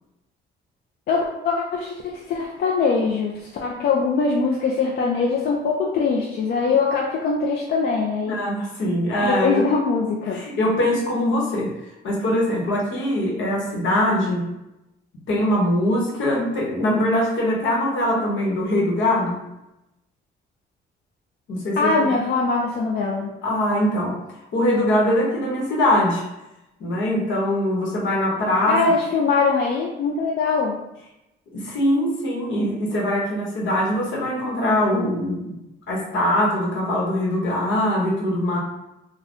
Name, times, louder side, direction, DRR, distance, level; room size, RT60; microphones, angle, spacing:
voice 1, 1.1-8.4 9.2-10.4 21.8-23.3 28.7-30.8, left 4 dB, 55° left, -1 dB, 0.4 m, -22 dB
voice 2, 8.3-9.6 10.3-11.7 12.0-14.5 15.3-19.4 21.5-22.2 23.4-24.2 24.5-26.2 26.8-28.8 31.5-35.6 35.9-38.6, left 1 dB, 70° left, -3 dB, 1.0 m, -22 dB
2.5 x 2.2 x 3.5 m, 0.92 s
cardioid pair, 90°, 20 cm